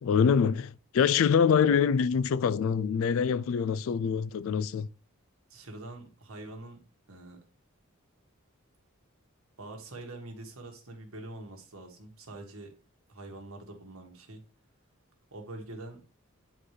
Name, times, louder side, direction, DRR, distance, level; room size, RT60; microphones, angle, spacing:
voice 1, 0.0-4.9, left 6 dB, 65° left, 0.3 m, -25 dB
voice 2, 5.5-6.8 7.1-7.4 9.6-12.7 13.1-14.4 15.3-16.0, right 2 dB, 70° right, 1.6 m, -44 dB
9.8 x 3.9 x 3.2 m
head